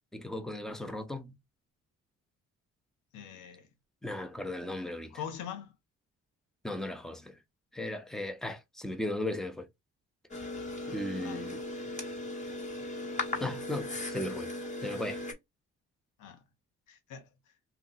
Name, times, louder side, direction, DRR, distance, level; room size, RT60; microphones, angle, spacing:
voice 1, 0.1-1.4 4.0-5.1 6.6-7.3 7.7-9.7 10.9-11.6 13.4-14.5 14.8-15.2, left 1 dB, ahead, 0.6 m, -36 dB
voice 2, 3.1-3.7 5.1-5.7 11.2-11.5 16.2-16.4 16.9-17.3, left 8 dB, 85° left, 0.9 m, -42 dB
sound 1, 10.3-15.3, left 2 dB, 25° left, 1.2 m, -37 dB
2.8 x 2.3 x 3.8 m
cardioid pair, 90°, 30 cm